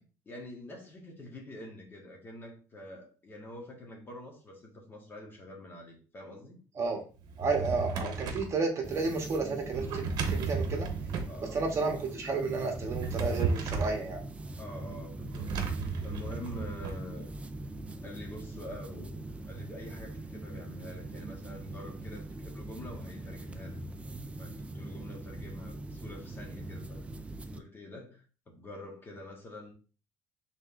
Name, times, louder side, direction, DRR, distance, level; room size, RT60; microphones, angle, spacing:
voice 1, 0.2-6.6 11.3-11.6 14.6-15.7 16.0-17.3 18.0-23.8 24.4-27.0 27.5-28.2 28.5-29.7, left 1 dB, 30° left, 1.3 m, -46 dB
voice 2, 6.7-7.1 7.4-10.9 11.5-14.2, right 4 dB, 40° right, 1.3 m, -32 dB
Drawer open or close, 7.2-8.5 9.7-11.4 12.7-14.0 15.3-17.0, right 4 dB, 60° right, 1.0 m, -34 dB
sound 1, 8.8-27.6, right 2 dB, 15° right, 0.4 m, -42 dB
5.1 x 3.5 x 2.6 m
cardioid pair, 120°, 8 cm